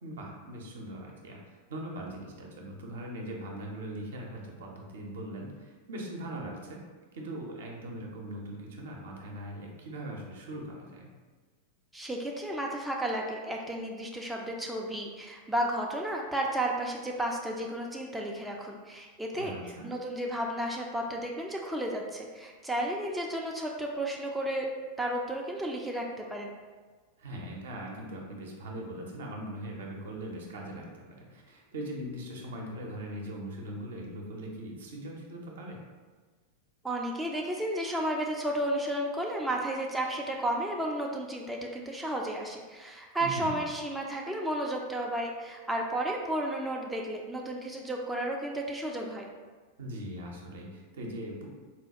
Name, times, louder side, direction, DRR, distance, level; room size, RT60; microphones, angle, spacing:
voice 1, 0.0-1.4 1.7-6.8 7.1-11.1 19.4-19.9 27.2-35.8 43.2-43.6 49.8-51.5, right 1 dB, 60° right, 0 dB, 0.6 m, -40 dB
voice 2, 11.9-24.7 25.0-26.5 36.8-49.3, right 1 dB, 5° right, -1 dB, 0.3 m, -33 dB
4.1 x 2.2 x 2.7 m, 1.4 s
figure-of-eight pair, 90°, 0 cm